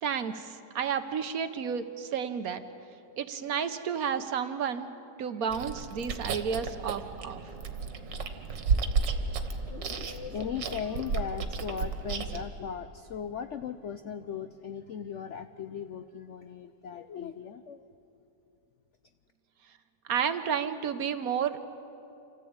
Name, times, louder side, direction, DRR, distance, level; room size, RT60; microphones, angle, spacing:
voice 1, 0.0-2.6 3.2-4.9 5.2-7.4 20.1-21.6, right 7 dB, 60° right, 10 dB, 1.2 m, -31 dB
Chewing mastication, 5.5-12.5, right 5 dB, 80° right, 1.9 m, -33 dB
voice 2, 9.7-17.9, left 7 dB, 70° left, 10 dB, 0.7 m, -38 dB
27.5 x 14.5 x 8.7 m, 2.8 s
omnidirectional pair, 1.9 m